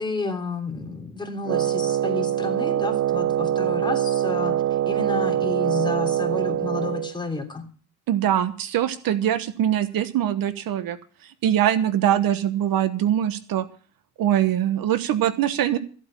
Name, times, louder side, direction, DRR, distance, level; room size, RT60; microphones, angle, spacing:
voice 1, 0.0-7.6, left 4 dB, 10° left, 3 dB, 3.2 m, -31 dB
Wind instrument woodwind instrument, 1.4-7.1, right 11 dB, 40° right, 0.7 m, -24 dB
voice 2, 8.1-11.0 11.2-13.7 14.2-15.8, right 11 dB, 60° right, 13 dB, 1.2 m, -22 dB
14.5 x 8.4 x 7.3 m, 0.41 s
cardioid pair, 105°, 40 cm